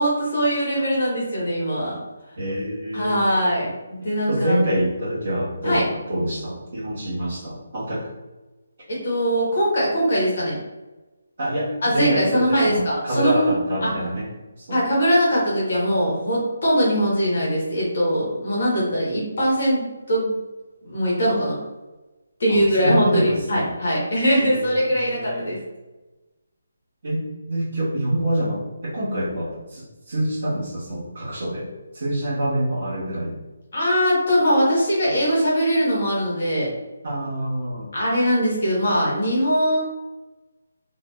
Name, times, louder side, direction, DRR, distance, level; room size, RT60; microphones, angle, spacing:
voice 1, 0.0-2.0 2.9-4.7 5.6-5.8 8.9-10.6 11.8-13.5 13.8-13.9 14.7-20.3 20.8-21.6 22.4-25.6 33.7-36.7 37.9-39.8, equal, 45° left, -5 dB, 0.9 m, -21 dB
voice 2, 2.4-3.2 4.3-8.1 11.4-14.3 14.6-14.8 22.5-23.6 24.3-25.5 27.0-33.4 37.0-37.9, right 1 dB, 45° right, -9 dB, 1.3 m, -26 dB
2.8 x 2.3 x 2.3 m, 1.1 s
hypercardioid pair, 175°, 0 cm